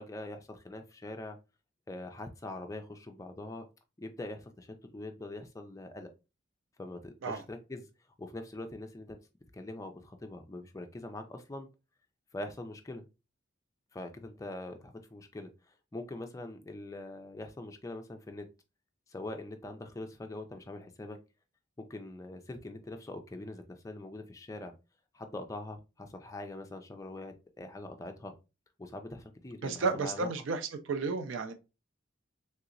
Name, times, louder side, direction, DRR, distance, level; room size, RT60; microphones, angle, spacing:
voice 1, 0.0-1.4 1.9-3.7 4.0-6.1 6.8-7.9 8.2-9.2 9.5-11.7 12.3-13.1 13.9-15.5 15.9-18.5 19.1-21.2 21.8-24.7 25.1-28.3 28.8-30.3, left 2 dB, 15° left, 0.4 m, -43 dB
voice 2, 29.6-30.6 30.9-31.5, right 4 dB, 70° right, 0.4 m, -32 dB
3.2 x 2.9 x 2.5 m
head